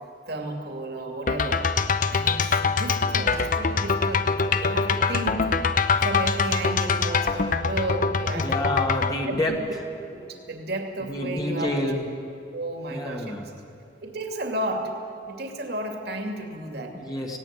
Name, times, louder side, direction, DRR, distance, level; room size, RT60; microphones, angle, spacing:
voice 1, 0.3-1.7 2.1-5.5 6.0-8.7 9.2-9.6 10.1-11.7 12.5-13.4 14.0-14.9 15.2-17.0, right 1 dB, 60° right, 3 dB, 2.6 m, -33 dB
sound 1, 1.3-9.1, left 5 dB, 45° left, 0.8 m, -24 dB
voice 2, 8.3-9.6 11.1-12.0 12.9-13.5 16.9-17.4, left 1 dB, 20° left, 0 dB, 1.6 m, -28 dB
18.5 x 17.0 x 9.5 m, 2.7 s
head